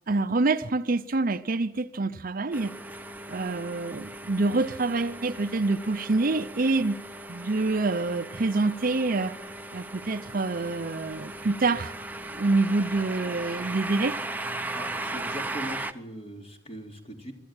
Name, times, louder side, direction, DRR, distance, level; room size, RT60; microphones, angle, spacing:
voice 1, 0.1-2.7 3.3-6.9 7.3-9.4 9.7-11.9 12.3-14.2, right 3 dB, 50° right, 0.7 m, -26 dB
sound 1, 2.5-15.9, right 2 dB, 10° right, 0.8 m, -37 dB
voice 2, 14.7-17.3, equal, 35° left, 3.3 m, -40 dB
23.5 x 13.5 x 9.0 m
head